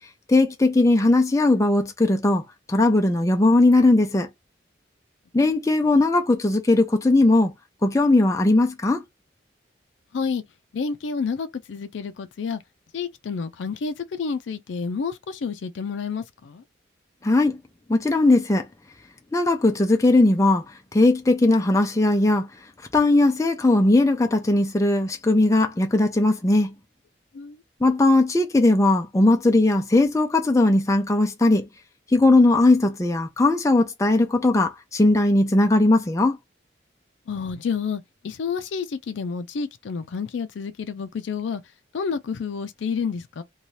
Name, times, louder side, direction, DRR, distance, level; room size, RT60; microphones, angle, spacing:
voice 1, 0.3-4.3 5.3-7.5 7.8-9.0 17.2-17.6 17.9-18.7 19.3-20.6 20.9-22.5 22.9-26.7 27.8-31.7 32.1-36.4, left 2 dB, 15° left, 0.4 m, -19 dB
voice 2, 10.1-10.4 10.7-12.6 12.9-16.6 27.3-27.6 37.3-41.6 41.9-43.4, left 5 dB, 80° left, 0.4 m, -29 dB
2.7 x 2.3 x 3.1 m
head